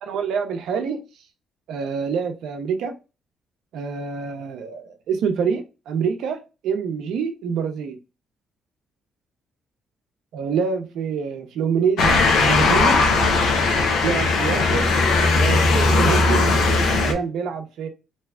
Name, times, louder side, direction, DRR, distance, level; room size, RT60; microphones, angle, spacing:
voice 1, 0.0-1.0 1.7-3.0 3.7-8.0 10.3-13.0 14.0-15.0 15.3-16.6 17.0-17.9, right 6 dB, 80° right, 0.6 m, -26 dB
Motor vehicle (road) / Siren, 12.0-17.1, left 3 dB, 80° left, 0.6 m, -18 dB
2.8 x 2.4 x 3.2 m
cardioid pair, 90°, 0 cm